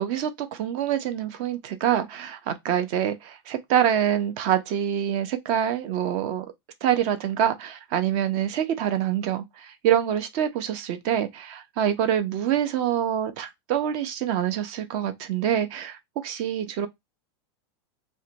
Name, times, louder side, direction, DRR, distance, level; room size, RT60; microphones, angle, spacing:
voice 1, 0.0-6.5 6.8-16.9, right 10 dB, 35° right, 0.4 m, -26 dB
2.5 x 2.1 x 2.7 m
supercardioid pair, 170°, 15 cm